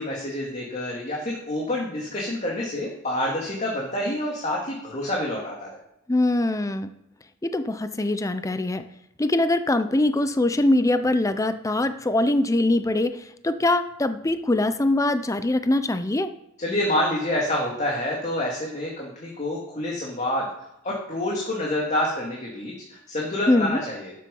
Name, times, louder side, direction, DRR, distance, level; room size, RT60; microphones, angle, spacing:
voice 1, 0.0-5.7 16.6-20.5 20.8-24.1, left 1 dB, 35° left, -3 dB, 2.3 m, -27 dB
voice 2, 6.1-6.9 7.4-8.8 9.2-16.3 23.5-23.8, left 2 dB, 15° left, 10 dB, 0.5 m, -23 dB
12.5 x 7.6 x 5.4 m, 0.81 s
head